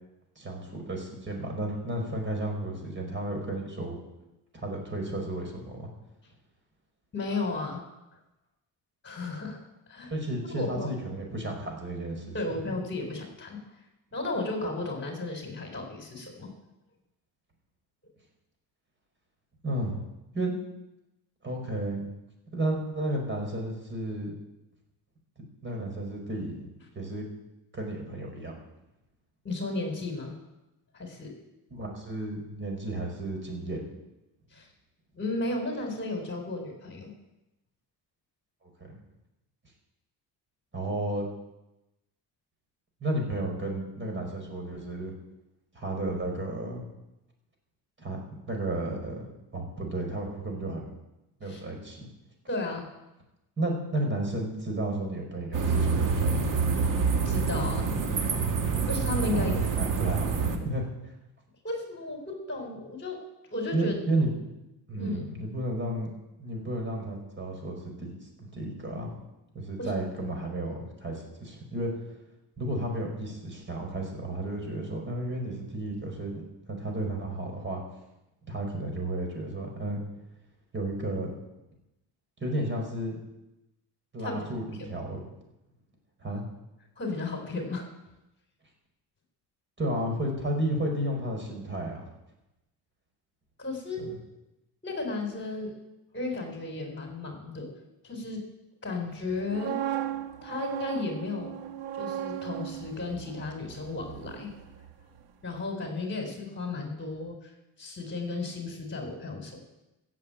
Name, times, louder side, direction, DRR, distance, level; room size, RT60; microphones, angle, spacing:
voice 1, 0.4-4.0 4.5-5.9 10.1-12.4 19.6-20.1 20.3-20.6 21.4-22.1 22.5-24.3 25.6-26.7 26.9-27.3 27.7-28.6 31.7-33.9 38.8-38.9 40.7-41.3 43.0-45.1 45.7-46.8 48.0-48.2 48.5-49.3 49.5-50.9 51.4-52.0 53.6-56.6 59.3-60.9 63.7-64.3 64.9-66.1 66.4-68.2 68.5-69.2 69.5-71.9 72.6-76.4 76.7-77.8 78.5-80.0 80.7-81.4 82.4-83.1 84.1-85.2 86.2-86.4 89.8-92.1 94.0-94.1, right 1 dB, 30° right, 2 dB, 5.2 m, -32 dB
voice 2, 7.1-7.8 9.0-9.6 9.9-10.1 10.6-10.9 12.3-13.6 14.1-16.5 29.4-30.3 30.9-31.3 34.5-34.7 35.1-37.1 51.4-51.6 52.5-52.9 57.2-57.9 58.9-59.5 60.5-60.6 61.6-63.2 63.5-63.9 65.0-65.2 69.8-69.9 84.2-84.4 84.8-84.9 87.0-87.8 93.6-94.0 94.8-95.7 96.1-97.7 98.0-98.4 98.8-99.8 100.4-101.5 101.9-104.5 105.4-107.5 107.8-109.6, left 3 dB, 25° left, 3 dB, 4.0 m, -34 dB
sound 1, 55.5-60.6, right 5 dB, 50° right, 1.9 m, -26 dB
sound 2, 99.3-105.2 105.5-105.8, right 11 dB, 65° right, 1.2 m, -37 dB
14.5 x 7.7 x 8.9 m, 0.95 s
cardioid pair, 110°, 41 cm